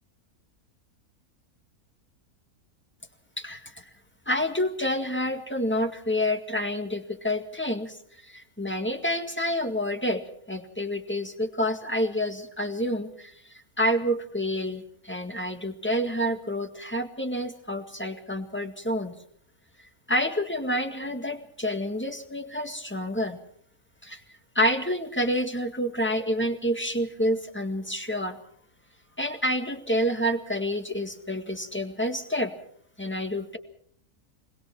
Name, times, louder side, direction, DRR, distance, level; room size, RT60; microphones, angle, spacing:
voice 1, 3.4-3.8 4.3-8.0 8.2-10.2 10.5-19.2 20.1-23.4 24.0-24.2 24.6-28.4 29.2-32.5 33.0-33.6, equal, 10° left, 6 dB, 1.8 m, -28 dB
22.0 x 21.0 x 6.1 m, 0.63 s
omnidirectional pair, 1.6 m